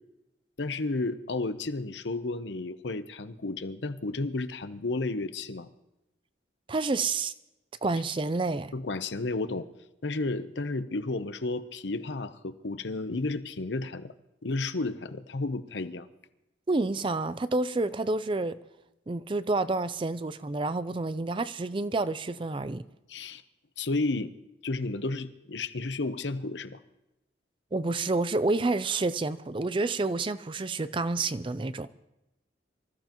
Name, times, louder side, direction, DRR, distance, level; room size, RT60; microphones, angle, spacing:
voice 1, 0.6-5.7 8.7-9.7 10.0-14.1 14.4-16.1 23.1-23.4 23.8-24.3 24.6-26.8, left 3 dB, 75° left, 0.8 m, -32 dB
voice 2, 6.7-7.3 7.8-8.7 16.7-18.6 19.1-22.8 27.7-31.9, right 3 dB, 30° right, 0.4 m, -29 dB
25.0 x 14.5 x 3.0 m
head